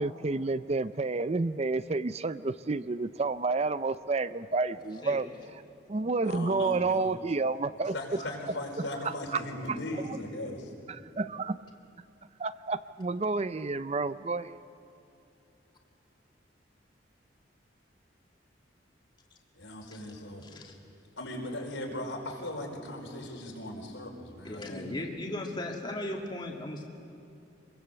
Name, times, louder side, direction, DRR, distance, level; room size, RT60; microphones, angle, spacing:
voice 1, 0.0-5.3 5.9-8.2 8.8-9.4 9.7-9.8 10.9-11.6 12.4-14.6, right 3 dB, 35° right, 14 dB, 0.5 m, -30 dB
voice 2, 6.2-7.1 7.9-10.7 19.5-20.4 21.2-24.9, left 1 dB, 80° left, 0 dB, 5.0 m, -38 dB
voice 3, 19.9-20.7 24.4-26.9, left 1 dB, 25° left, 0 dB, 2.2 m, -38 dB
26.0 x 21.5 x 8.2 m, 2.7 s
head